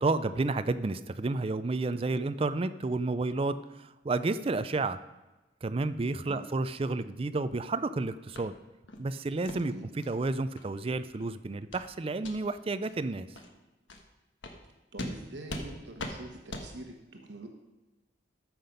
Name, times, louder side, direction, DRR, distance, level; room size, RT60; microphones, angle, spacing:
voice 1, 0.0-5.0 5.6-8.5 9.0-13.3, right 3 dB, 30° right, 12 dB, 0.4 m, -31 dB
sound 1, 8.3-8.5 8.9-9.0 9.4-9.6 10.0-10.1 10.6-10.7 11.1-11.3 11.7-11.9 12.2-12.3 12.8-12.9 13.3-13.5 13.9-14.0 14.4-14.6 15.0-15.1 15.5-15.7 16.0-16.1 16.5-16.7, left 1 dB, 90° left, 1.3 m, -40 dB
voice 2, 14.9-17.5, right 2 dB, 75° right, 3 dB, 1.2 m, -45 dB
13.5 x 5.9 x 5.2 m, 1.1 s
head